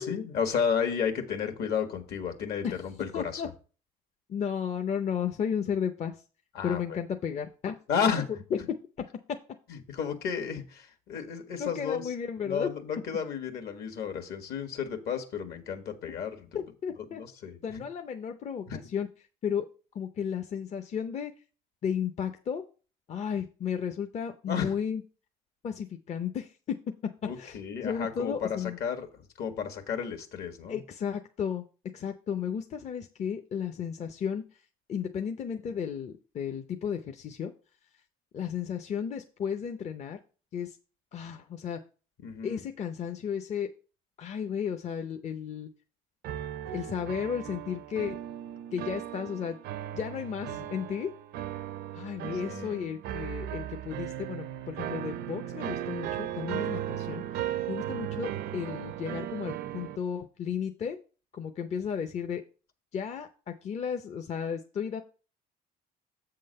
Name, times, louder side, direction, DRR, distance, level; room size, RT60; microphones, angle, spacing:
voice 1, 0.0-3.4 6.5-7.0 7.9-8.3 9.7-12.1 12.4-16.5 17.1-17.8 18.7-18.8 24.5-24.7 27.2-29.1 29.4-30.8 42.2-42.6 50.5-50.6 52.4-52.9, left 7 dB, 70° left, 6 dB, 1.6 m, -32 dB
voice 2, 3.1-3.5 4.3-6.2 6.6-7.8 8.0-8.1 8.5-8.6 11.6-12.7 16.5-17.2 17.6-19.1 19.4-19.7 19.9-21.3 21.8-22.6 23.1-25.0 25.6-26.8 27.4-28.8 30.7-31.6 31.9-34.4 34.9-37.5 38.3-40.2 40.5-40.8 41.1-41.8 42.4-43.7 44.2-45.7 46.7-48.2 48.7-49.6 49.9-51.1 51.9-57.2 57.7-61.0 61.3-62.4 62.9-65.0, left 7 dB, 40° left, 6 dB, 0.6 m, -33 dB
sound 1, 46.2-60.0, right 11 dB, 75° right, 0.5 m, -37 dB
7.6 x 3.8 x 6.5 m, 0.36 s
cardioid pair, 110°, 17 cm